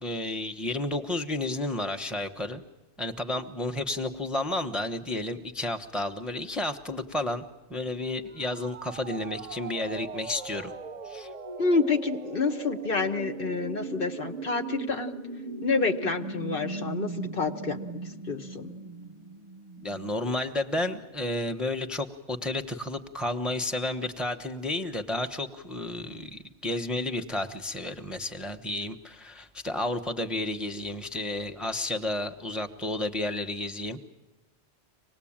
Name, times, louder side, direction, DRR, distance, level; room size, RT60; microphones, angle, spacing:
voice 1, 0.0-2.6 3.0-7.4 7.7-10.7 11.0-11.3 19.8-34.0, left 2 dB, ahead, 4 dB, 1.0 m, -31 dB
sound 1, 8.3-20.1, right 3 dB, 40° right, 0.9 m, -39 dB
voice 2, 11.6-15.2 15.6-17.8 18.3-18.7, left 4 dB, 50° left, 7 dB, 1.3 m, -28 dB
25.0 x 19.5 x 8.8 m, 1.1 s
omnidirectional pair, 1.2 m